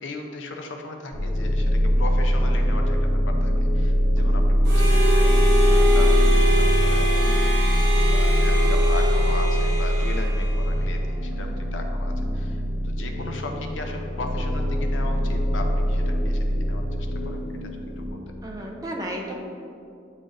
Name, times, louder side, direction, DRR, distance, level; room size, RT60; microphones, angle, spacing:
voice 1, 0.0-17.4 18.0-18.2, left 2 dB, 85° left, 3 dB, 0.6 m, -37 dB
sound 1, 1.1-18.1, equal, 45° left, 0.6 m, -21 dB
Harmonica, 4.6-11.0, left 1 dB, 60° right, 1.0 m, -26 dB
voice 2, 7.2-7.6 11.3-11.6 18.4-19.3, right 1 dB, 20° right, 0 dB, 0.6 m, -35 dB
9.5 x 3.8 x 2.6 m, 2.5 s
head